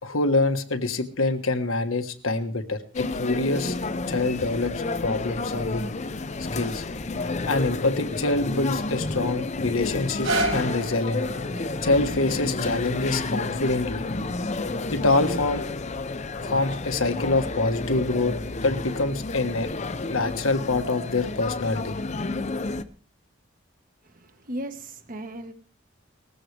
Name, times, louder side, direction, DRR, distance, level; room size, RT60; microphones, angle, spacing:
voice 1, 0.0-3.8 4.1-4.7 5.0-5.9 6.5-6.8 7.2-11.3 11.8-14.1 14.9-15.7 16.4-18.3 18.6-19.7 20.1-22.0, left 2 dB, 80° left, 8 dB, 1.4 m, -25 dB
sound 1, 2.9-22.8, left 3 dB, 35° left, 0.7 m, -30 dB
sound 2, 10.0-16.1 16.7-16.8, right 2 dB, 70° right, 5.1 m, -34 dB
voice 2, 24.0-25.5, right 1 dB, 45° right, 8 dB, 1.5 m, -36 dB
20.0 x 15.0 x 3.4 m, 0.40 s
head